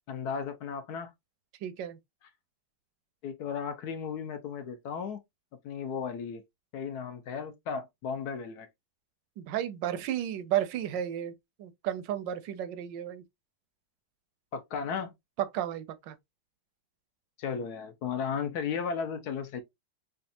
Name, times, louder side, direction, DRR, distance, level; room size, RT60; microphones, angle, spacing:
voice 1, 0.1-1.1 3.2-5.2 5.6-6.4 6.7-8.7 14.5-15.1 17.4-19.6, left 6 dB, 65° left, 1.1 m, -35 dB
voice 2, 1.6-2.0 9.4-13.2 15.4-16.2, right 11 dB, 80° right, 1.2 m, -33 dB
5.1 x 2.4 x 2.6 m
omnidirectional pair, 2.0 m